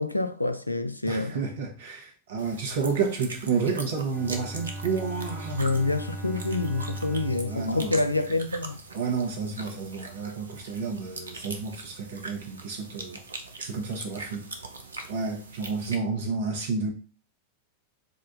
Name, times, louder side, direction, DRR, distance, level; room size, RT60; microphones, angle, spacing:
voice 1, 0.0-1.4 5.5-8.8, left 2 dB, 85° left, 0.4 m, -27 dB
voice 2, 1.1-5.6 7.5-7.9 8.9-13.2 13.6-14.5 15.1-16.9, right 5 dB, 60° right, 1.2 m, -30 dB
sound 1, 2.4-15.9, right 3 dB, 75° right, 0.6 m, -42 dB
Bowed string instrument, 4.1-9.1, right 1 dB, 15° left, 1.2 m, -39 dB
4.2 x 2.5 x 3.9 m
figure-of-eight pair, 90°, 0 cm